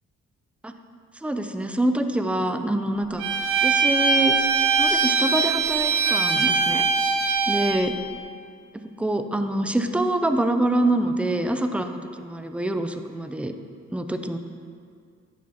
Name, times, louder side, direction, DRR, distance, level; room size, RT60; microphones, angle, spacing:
voice 1, 1.2-3.2 3.6-4.4 4.8-6.8 7.5-7.9 9.0-13.5 13.9-14.4, right 1 dB, 5° right, 7 dB, 0.4 m, -25 dB
Bowed string instrument, 3.2-7.8, right 5 dB, 85° right, 0.8 m, -22 dB
10.5 x 6.2 x 2.9 m, 2.2 s
cardioid pair, 90°, 30 cm